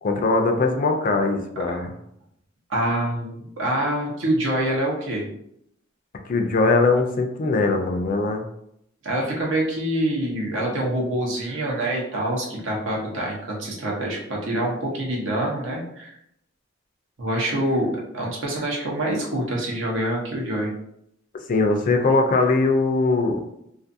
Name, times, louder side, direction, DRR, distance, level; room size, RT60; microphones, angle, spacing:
voice 1, 0.0-1.9 6.3-8.4 21.5-23.4, left 3 dB, 45° left, 4 dB, 0.4 m, -21 dB
voice 2, 2.7-5.2 9.0-16.1 17.2-20.7, right 1 dB, 75° right, -3 dB, 0.9 m, -26 dB
2.5 x 2.5 x 2.6 m, 0.75 s
head